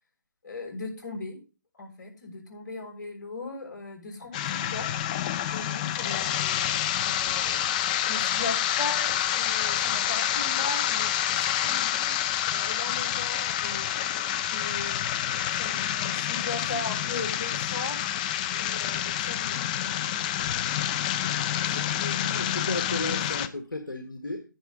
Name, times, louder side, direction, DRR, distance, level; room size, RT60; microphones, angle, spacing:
voice 1, 0.4-1.4 1.8-4.9 5.5-14.0 14.5-18.0 18.5-20.5 21.7-22.6, left 3 dB, 55° left, 0 dB, 6.3 m, -39 dB
sound 1, 4.3-23.5, left 11 dB, 20° left, 0.6 m, -28 dB
voice 2, 22.3-24.4, left 2 dB, 90° left, 4 dB, 1.7 m, -34 dB
11.0 x 10.0 x 3.9 m, 0.34 s
figure-of-eight pair, 150°, 11 cm